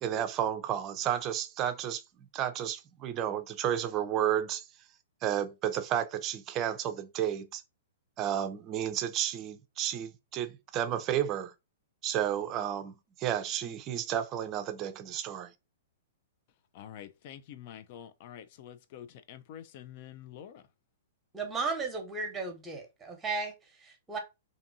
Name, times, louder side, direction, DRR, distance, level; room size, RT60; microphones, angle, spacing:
voice 1, 0.0-2.0 2.3-4.6 5.2-7.6 8.2-11.5 12.0-12.9 13.2-15.5, right 10 dB, 35° right, 0.4 m, -32 dB
voice 2, 16.7-20.6, left 10 dB, 50° left, 0.3 m, -47 dB
voice 3, 21.3-24.2, right 4 dB, 15° right, 1.0 m, -35 dB
2.6 x 2.6 x 2.6 m
hypercardioid pair, 120°, 0 cm